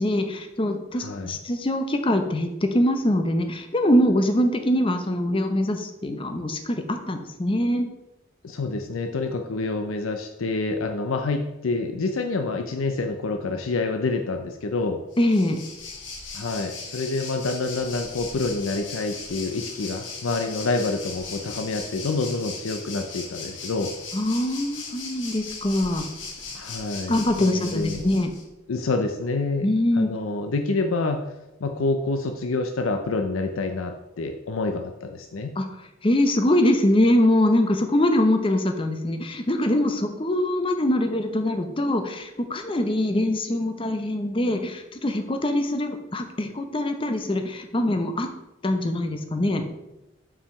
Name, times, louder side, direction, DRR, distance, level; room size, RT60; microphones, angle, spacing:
voice 1, 0.0-7.9 15.2-15.6 24.1-26.1 27.1-28.3 29.6-30.1 35.6-35.7 36.0-48.3 48.6-49.6, left 1 dB, 25° left, 6 dB, 0.7 m, -23 dB
voice 2, 0.9-1.4 8.4-15.0 16.3-23.9 26.5-28.0 28.7-29.7 29.9-31.3 31.6-35.5, left 3 dB, 85° left, 5 dB, 0.6 m, -27 dB
Waves surf, 15.1-28.4, left 4 dB, 65° left, 1.5 m, -38 dB
5.7 x 4.9 x 5.8 m, 0.95 s
head